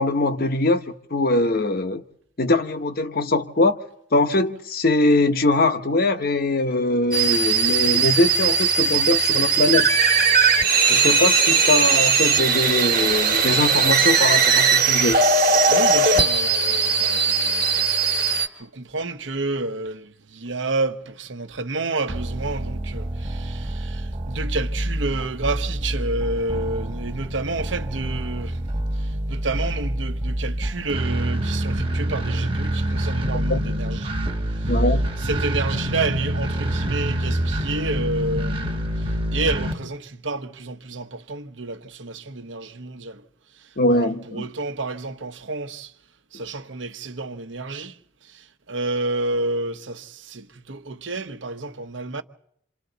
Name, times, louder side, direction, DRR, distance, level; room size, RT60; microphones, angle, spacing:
voice 1, 0.0-2.0 2.4-3.8 4.1-9.9 10.8-15.2 33.5-33.6 34.7-35.1 43.8-44.5, left 2 dB, 50° left, 1.0 m, -22 dB
sound 1, 7.1-18.5, right 5 dB, 50° right, 1.6 m, -19 dB
voice 2, 15.7-17.8 18.3-18.4 18.6-28.6 29.3-34.1 35.2-38.9 39.3-43.2 43.9-45.9 46.3-47.9 48.7-52.2, right 2 dB, 80° right, 1.1 m, -29 dB
sound 2, 22.1-39.7, right 1 dB, 30° right, 1.2 m, -26 dB
28.0 x 26.5 x 4.0 m
head